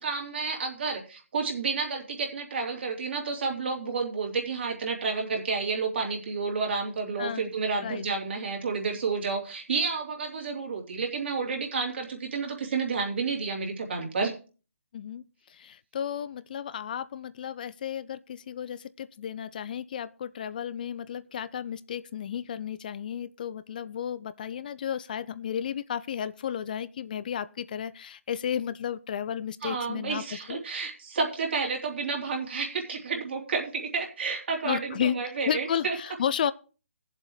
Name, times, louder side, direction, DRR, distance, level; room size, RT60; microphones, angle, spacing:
voice 1, 0.0-14.3 29.6-36.0, right 4 dB, 55° right, 3.2 m, -30 dB
voice 2, 7.2-7.5 7.8-8.0 14.9-15.2 15.5-30.2 30.5-30.6 34.6-35.2 35.4-36.5, left 9 dB, 40° left, 0.4 m, -33 dB
19.0 x 7.4 x 3.2 m
figure-of-eight pair, 150°, 7 cm